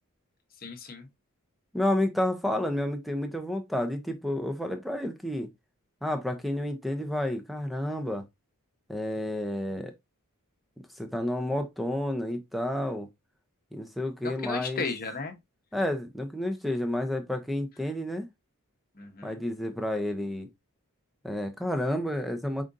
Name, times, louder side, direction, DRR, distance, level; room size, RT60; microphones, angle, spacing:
voice 1, 0.6-1.1 14.2-15.4 18.9-19.4, left 4 dB, 40° left, 1.0 m, -35 dB
voice 2, 1.7-5.5 6.0-8.2 8.9-9.9 11.0-13.1 13.7-14.8 15.7-18.3 19.2-20.5 21.2-22.6, left 1 dB, ahead, 0.6 m, -30 dB
5.0 x 3.8 x 2.6 m
head